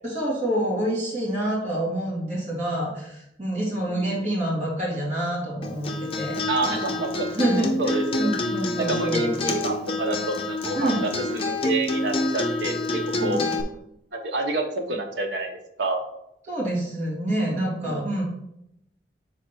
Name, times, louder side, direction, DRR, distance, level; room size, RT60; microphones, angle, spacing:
voice 1, 0.0-6.4 7.3-9.3 10.7-11.0 13.2-13.4 16.4-18.2, right 1 dB, 40° right, -5 dB, 2.7 m, -27 dB
voice 2, 3.7-4.2 6.5-7.3 7.8-8.3 8.8-13.4 14.1-16.0 17.8-18.0, right 2 dB, 85° right, 2 dB, 1.1 m, -28 dB
Acoustic guitar, 5.6-13.6, left 2 dB, 30° left, 0.7 m, -27 dB
6.3 x 4.1 x 4.5 m, 0.80 s
head